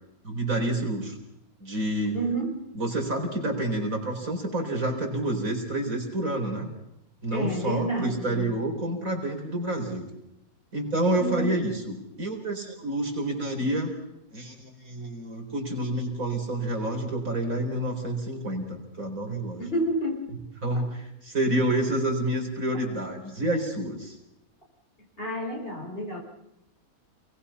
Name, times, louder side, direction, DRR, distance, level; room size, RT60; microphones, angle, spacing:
voice 1, 0.2-1.2 1.6-2.2 2.7-6.7 7.2-10.1 10.7-13.9 14.3-19.6 20.6-24.2, right 1 dB, 60° right, 2 dB, 4.9 m, -28 dB
voice 2, 2.1-2.6 7.3-8.5 11.2-11.6 19.6-20.2 20.7-20.9 25.2-26.2, right 1 dB, 35° left, 0 dB, 5.7 m, -29 dB
28.5 x 20.0 x 5.7 m, 0.83 s
omnidirectional pair, 1.6 m